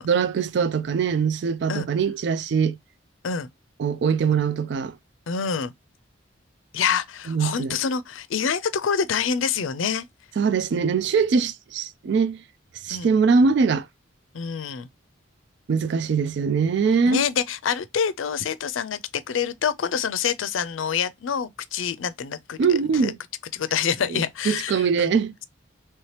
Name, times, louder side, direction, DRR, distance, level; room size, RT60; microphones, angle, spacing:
voice 1, 0.0-2.8 3.8-5.0 7.3-7.8 10.4-12.4 12.8-13.9 15.7-17.2 22.6-23.2 24.1-25.3, right 5 dB, 60° right, 0.3 m, -22 dB
voice 2, 5.3-5.7 6.7-10.1 12.9-13.1 14.3-14.9 17.1-22.6 23.0-23.1 23.5-25.1, left 7 dB, 90° left, 0.5 m, -26 dB
3.2 x 2.8 x 3.1 m
head